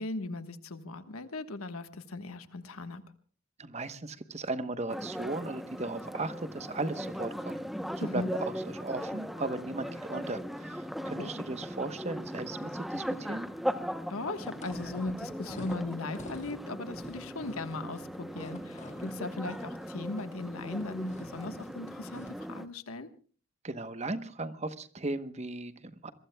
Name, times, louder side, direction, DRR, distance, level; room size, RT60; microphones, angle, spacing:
voice 1, 0.0-3.0 8.0-8.3 11.2-11.3 14.1-23.1, left 2 dB, 85° left, 9 dB, 1.3 m, -38 dB
voice 2, 3.6-7.6 8.0-13.5 23.6-26.1, right 2 dB, 30° right, 11 dB, 1.0 m, -36 dB
sound 1, 4.9-22.7, equal, ahead, 0.8 m, -39 dB
sound 2, 14.4-22.5, left 1 dB, 35° left, 1.7 m, -49 dB
27.0 x 22.5 x 2.3 m, 0.40 s
head